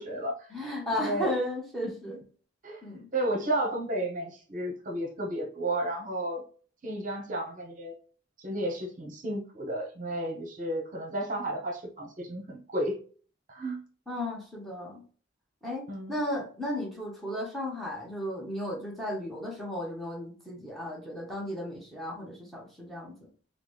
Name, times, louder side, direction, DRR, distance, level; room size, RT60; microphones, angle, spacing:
voice 1, 0.0-0.5 1.0-1.3 2.6-2.8 3.1-6.4 6.8-7.9 8.4-13.0 13.5-13.8 15.9-16.2, right 1 dB, 40° right, 0 dB, 0.7 m, -32 dB
voice 2, 0.5-2.2 2.8-3.1 14.1-15.0 15.6-23.3, left 1 dB, ahead, -3 dB, 0.8 m, -34 dB
3.8 x 2.0 x 3.1 m, 0.42 s
head